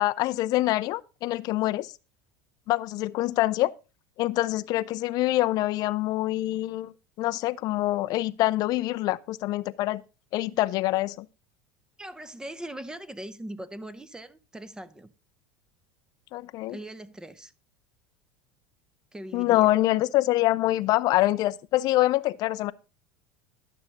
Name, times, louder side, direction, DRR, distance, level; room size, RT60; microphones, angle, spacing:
voice 1, 0.0-1.9 2.7-3.7 4.2-10.0 10.3-11.3 16.3-16.8 19.3-22.7, left 16 dB, 55° left, 0.4 m, -25 dB
voice 2, 12.0-15.1 16.7-17.5 19.1-19.8, right 1 dB, 10° right, 0.7 m, -40 dB
11.5 x 7.0 x 3.9 m
supercardioid pair, 105°, 8 cm